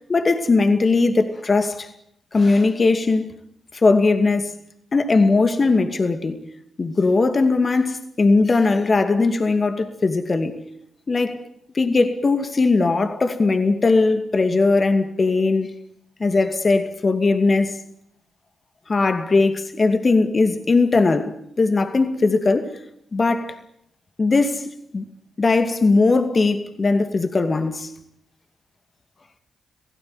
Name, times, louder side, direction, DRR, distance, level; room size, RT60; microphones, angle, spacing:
voice 1, 0.1-1.9 2.3-3.3 3.7-4.5 4.9-6.4 6.8-10.6 11.1-11.4 11.7-15.7 16.2-17.8 18.9-22.8 23.1-23.6 24.2-25.0 25.4-27.9, left 3 dB, 40° left, 2.4 m, -19 dB
26.5 x 17.5 x 9.6 m
hypercardioid pair, 40°, 0 cm